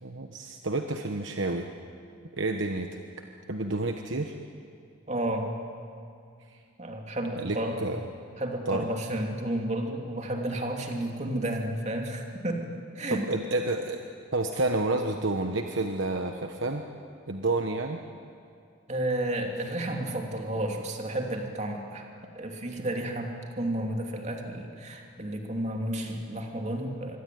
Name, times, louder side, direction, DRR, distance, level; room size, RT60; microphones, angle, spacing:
voice 1, 0.0-1.7 2.3-2.9 3.5-4.3 6.5-6.6 7.4-8.1 8.7-8.9 13.1-14.0 14.3-16.8 17.3-18.0, right 2 dB, 60° right, 4 dB, 1.2 m, -29 dB
voice 2, 5.1-5.5 6.8-7.8 8.4-12.7 13.0-13.2 18.9-22.0 22.3-27.2, right 1 dB, 35° right, 2 dB, 2.9 m, -31 dB
25.5 x 23.5 x 9.4 m, 2.4 s
head